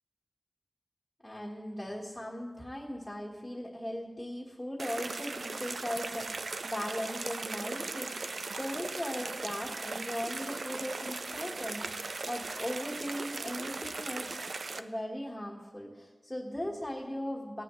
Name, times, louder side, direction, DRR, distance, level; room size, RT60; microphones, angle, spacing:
voice 1, 1.2-8.1 8.6-14.4 14.8-17.6, left 1 dB, 10° left, -3 dB, 1.5 m, -38 dB
sound 1, 4.8-14.8, right 3 dB, 70° right, 0.5 m, -38 dB
18.5 x 9.9 x 3.1 m, 1.3 s
wide cardioid pair, 95°, 0 cm